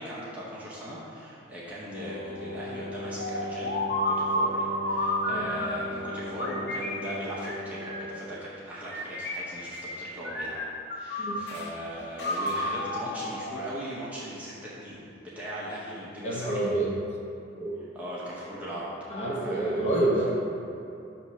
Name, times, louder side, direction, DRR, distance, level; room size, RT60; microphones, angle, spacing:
voice 1, 0.0-3.8 4.1-10.6 10.9-16.6 17.8-18.9 19.4-20.0, equal, 5° right, -8 dB, 0.7 m, -39 dB
Wind instrument woodwind instrument, 1.9-8.5, left 1 dB, 85° left, 1.4 m, -38 dB
sound 1, 3.2-6.0 6.4-8.2 8.8-10.0 10.2-11.7 12.2-14.0, left 1 dB, 55° left, 0.8 m, -31 dB
voice 2, 16.2-16.9 17.6-17.8 19.1-20.3, right 2 dB, 35° left, -5 dB, 1.1 m, -27 dB
6.1 x 3.0 x 5.5 m, 2.7 s
head